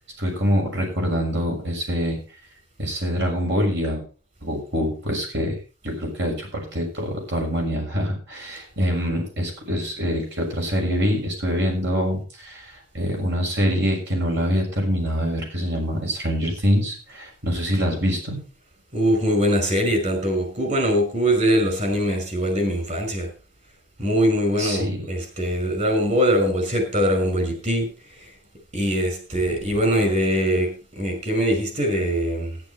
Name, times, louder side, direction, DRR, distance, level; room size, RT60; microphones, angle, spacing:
voice 1, 0.2-2.2 2.8-4.0 4.4-5.6 5.8-18.4 24.6-25.0, equal, 60° right, 1 dB, 6.7 m, -25 dB
voice 2, 18.9-23.3 24.0-27.9 28.2-28.3 28.7-32.6, equal, 35° right, 5 dB, 5.8 m, -22 dB
13.5 x 11.0 x 4.4 m, 0.36 s
head